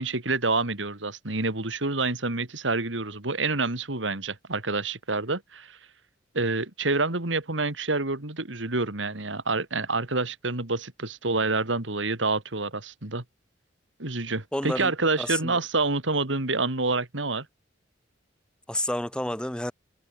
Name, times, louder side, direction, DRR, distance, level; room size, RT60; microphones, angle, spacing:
voice 1, 0.0-5.8 6.3-13.2 14.0-17.5, right 3 dB, 85° right, 2.7 m, -27 dB
voice 2, 14.5-14.9 15.2-15.6 18.7-19.7, left 1 dB, 5° left, 1.2 m, -29 dB
head